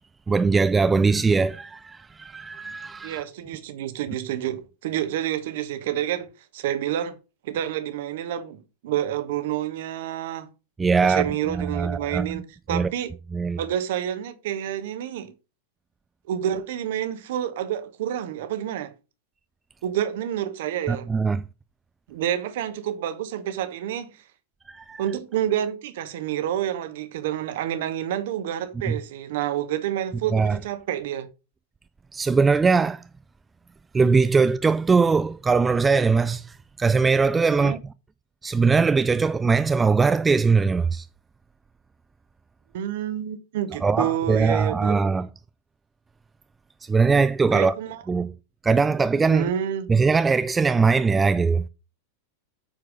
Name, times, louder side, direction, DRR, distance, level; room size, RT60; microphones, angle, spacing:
voice 1, 0.3-3.2 10.8-12.4 12.7-12.9 13.3-13.6 20.9-21.4 24.7-25.0 28.9-29.0 30.3-30.6 32.1-33.0 33.9-37.9 38.4-41.1 43.8-45.3 46.8-47.7 48.1-48.3 48.6-49.5 49.9-51.7, right 4 dB, 15° right, 0.3 m, -21 dB
voice 2, 3.0-6.3 6.5-7.1 7.4-10.5 11.0-13.1 13.6-15.3 16.3-18.9 19.8-21.1 22.1-24.2 25.0-31.3 37.5-37.8 42.7-45.0 47.5-48.0 49.3-49.9, right 11 dB, 55° right, 1.2 m, -28 dB
9.1 x 4.7 x 5.0 m
figure-of-eight pair, 90°, 0 cm